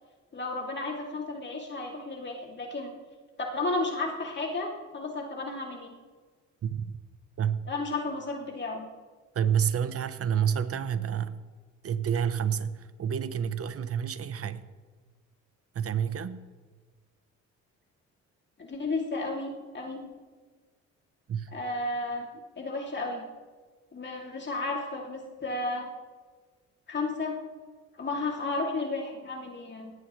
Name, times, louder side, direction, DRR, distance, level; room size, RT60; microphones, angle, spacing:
voice 1, 0.3-2.9 3.4-5.9 7.7-8.9 18.6-20.0 21.5-22.3 22.6-23.2 23.9-25.9 26.9-27.4 28.0-29.9, left 2 dB, 35° left, 0 dB, 2.6 m, -33 dB
voice 2, 6.6-7.0 7.4-7.7 9.3-11.4 11.8-14.7 15.7-16.4 21.3-21.5, right 8 dB, 50° right, 13 dB, 0.9 m, -29 dB
18.5 x 16.5 x 3.2 m, 1.5 s
cardioid pair, 90°, 30 cm